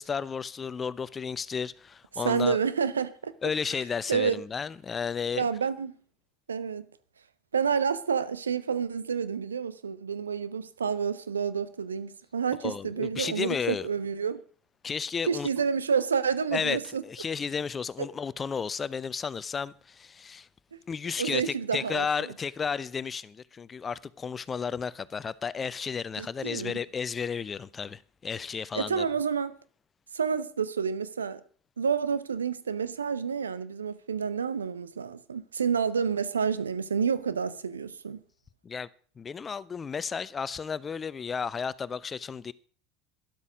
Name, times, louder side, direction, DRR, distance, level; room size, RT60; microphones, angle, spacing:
voice 1, 0.0-2.6 3.4-5.5 12.6-13.9 14.8-15.5 16.5-16.8 17.0-20.5 20.9-29.1 38.6-38.9 39.2-42.5, left 6 dB, 25° left, 0.8 m, -33 dB
voice 2, 2.2-3.3 4.1-4.4 5.3-5.9 6.5-6.9 7.5-14.4 15.3-17.0 21.2-22.3 26.2-26.8 28.7-29.6 30.1-31.4 31.8-38.2, right 6 dB, 80° right, 0.9 m, -29 dB
12.5 x 12.0 x 5.1 m
figure-of-eight pair, 70°, 0 cm